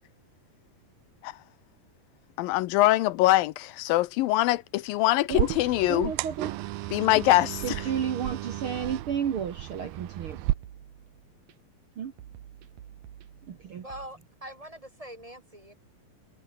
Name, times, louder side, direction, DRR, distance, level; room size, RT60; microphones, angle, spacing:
voice 1, 2.4-6.1 6.9-7.8, left 17 dB, 85° left, 2.5 m, -23 dB
sound 1, 5.3-10.5, right 16 dB, 85° right, 2.8 m, -33 dB
voice 2, 5.9-6.5 7.6-10.4 12.0-12.1 13.5-13.8, right 8 dB, 55° right, 1.7 m, -32 dB
sound 2, 8.1-8.2 8.8-10.1 10.5-11.5 12.2-14.1, right 10 dB, 70° right, 3.3 m, -49 dB
voice 3, 13.8-15.7, right 1 dB, 10° right, 3.2 m, -43 dB
omnidirectional pair, 4.1 m